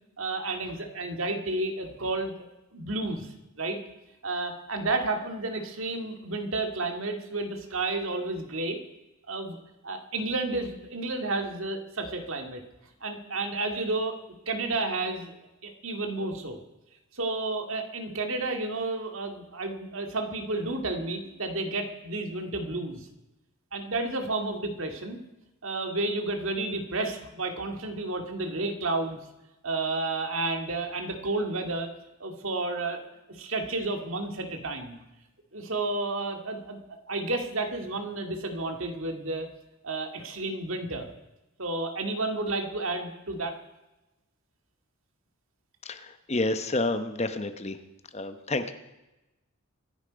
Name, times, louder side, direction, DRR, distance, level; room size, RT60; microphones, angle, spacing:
voice 1, 0.2-2.3 2.7-3.3 3.6-3.8 4.2-8.8 9.3-12.6 13.0-14.2 14.5-15.3 15.6-16.6 17.1-23.1 23.7-25.2 25.6-29.2 29.6-31.9 32.2-33.0 33.3-35.0 35.5-36.8 37.1-39.5 39.8-41.1 41.6-43.6, right 2 dB, 60° right, 5 dB, 2.1 m, -31 dB
voice 2, 45.8-47.8 48.1-48.7, left 2 dB, 30° left, 9 dB, 0.9 m, -29 dB
24.5 x 10.5 x 5.2 m, 0.98 s
head